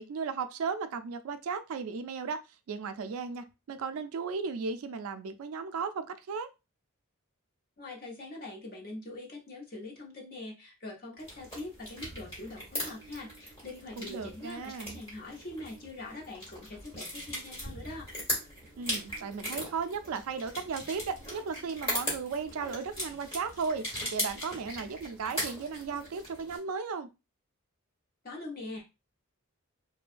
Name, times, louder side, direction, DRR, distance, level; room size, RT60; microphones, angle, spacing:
voice 1, 0.0-2.4 2.7-6.5 14.0-15.0 18.8-27.1, right 5 dB, 75° right, 0.3 m, -35 dB
voice 2, 7.8-18.1 28.2-28.9, left 2 dB, 40° left, 0.7 m, -43 dB
sound 1, 11.2-26.6, equal, 25° left, 1.2 m, -39 dB
2.7 x 2.2 x 2.4 m
head